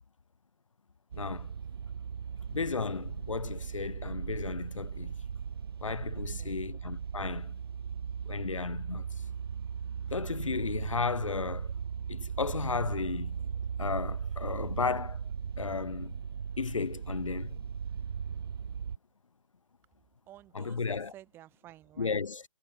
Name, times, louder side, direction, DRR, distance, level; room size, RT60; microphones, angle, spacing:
voice 1, 1.1-1.5 2.5-5.1 5.8-7.5 8.3-9.1 10.1-11.7 12.1-13.5 13.8-15.2 15.6-16.2 16.6-17.6 20.5-21.1 22.0-22.4, left 4 dB, 85° left, 0.5 m, -34 dB
sound 1, 1.1-19.0, right 7 dB, 50° right, 1.2 m, -38 dB
voice 2, 6.1-6.6 20.3-22.2, right 14 dB, 15° right, 2.2 m, -53 dB
figure-of-eight pair, 140°, 16 cm